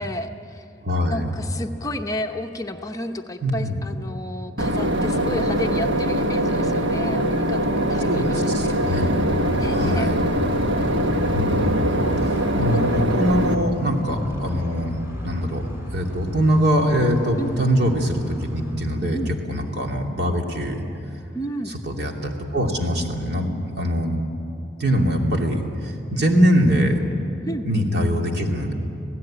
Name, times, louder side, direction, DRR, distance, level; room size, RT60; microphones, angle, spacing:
voice 1, 0.0-0.7 1.1-8.5 8.8-9.1 9.5-10.1 12.6-13.6 14.4-14.5 17.4-17.7 19.1-19.3 21.3-21.7 27.4-27.7, left 1 dB, 20° left, 4 dB, 0.8 m, -32 dB
voice 2, 0.8-1.3 3.4-3.8 8.1-9.4 9.7-10.3 11.3-14.9 15.2-15.7 15.9-20.8 21.8-24.2 24.8-27.0 27.6-28.7, equal, 60° right, 1 dB, 2.7 m, -23 dB
Boat Water vehicle / Engine, 4.6-13.5, right 1 dB, 85° right, 1.4 m, -22 dB
Motorcycle, 8.7-19.4, left 1 dB, 15° right, 4.3 m, -32 dB
27.0 x 17.0 x 8.8 m, 2.8 s
head